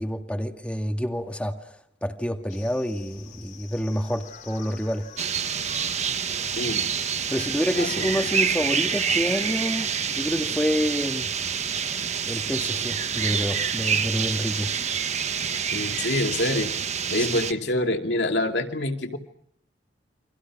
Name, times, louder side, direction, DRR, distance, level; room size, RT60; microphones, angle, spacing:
voice 1, 0.0-1.8 2.0-5.1 7.3-11.3 12.3-14.7, equal, 5° left, 2.0 m, -28 dB
sound 1, 2.5-10.5, left 7 dB, 50° left, 4.1 m, -45 dB
sound 2, 5.2-17.5, right 7 dB, 40° right, 1.3 m, -27 dB
voice 2, 6.6-6.9 7.7-8.1 15.7-16.7 17.1-19.2, left 1 dB, 80° left, 2.6 m, -26 dB
30.0 x 25.0 x 6.1 m
head